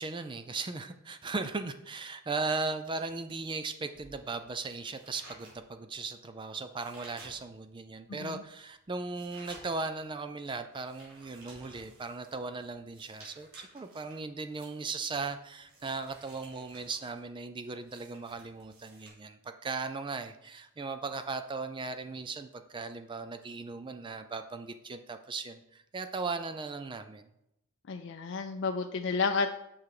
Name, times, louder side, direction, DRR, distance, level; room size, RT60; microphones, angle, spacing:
voice 1, 0.0-27.2, right 3 dB, 20° right, 9 dB, 0.4 m, -37 dB
sound 1, 3.9-7.8 8.2-19.1, right 2 dB, 65° right, 3.0 m, -55 dB
voice 2, 27.9-29.5, left 4 dB, 55° left, 5 dB, 0.4 m, -31 dB
7.0 x 5.7 x 4.8 m, 0.82 s
head